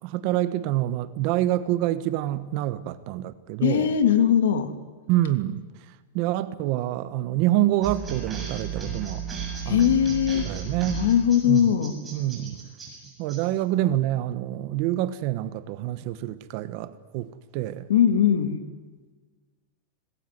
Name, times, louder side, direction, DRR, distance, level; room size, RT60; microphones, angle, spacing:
voice 1, 0.0-3.9 5.1-9.2 9.6-9.9 10.5-11.1 11.4-11.7 12.1-12.7 13.0-17.9, right 14 dB, 45° right, 14 dB, 1.2 m, -27 dB
voice 2, 3.6-4.7 9.6-10.5 10.9-12.0 17.9-18.6, left 9 dB, 80° left, 9 dB, 3.1 m, -20 dB
sound 1, 7.8-13.4, right 6 dB, 15° right, 7.3 m, -34 dB
26.5 x 20.5 x 9.5 m, 1.4 s
supercardioid pair, 160°, 0 cm